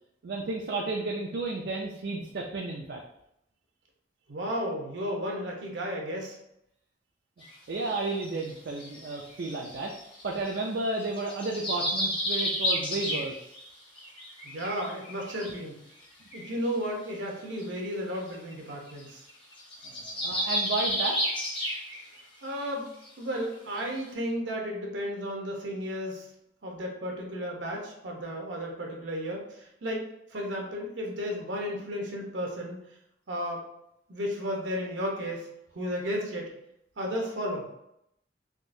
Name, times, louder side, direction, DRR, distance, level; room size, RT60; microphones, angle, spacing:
voice 1, 0.2-3.0 7.7-9.9 10.2-13.3 19.8-21.2, right 3 dB, 60° right, 0 dB, 0.4 m, -32 dB
voice 2, 4.3-6.4 14.4-15.8 16.3-19.3 22.4-22.9 23.2-26.3 26.6-32.8 33.3-33.6 34.1-35.5 35.7-36.5 37.0-37.7, equal, 85° right, 0 dB, 0.9 m, -33 dB
sound 1, 7.4-7.5 8.2-10.6 11.0-13.7 14.0-15.6 16.0-16.1 16.3-16.6 17.6-17.7 17.9-18.0 18.3-18.5 18.9-19.0 19.3-22.2 22.5-22.7 23.1-23.2 23.8-23.9, equal, 30° left, 0.8 m, -32 dB
3.7 x 2.8 x 2.6 m, 0.79 s
head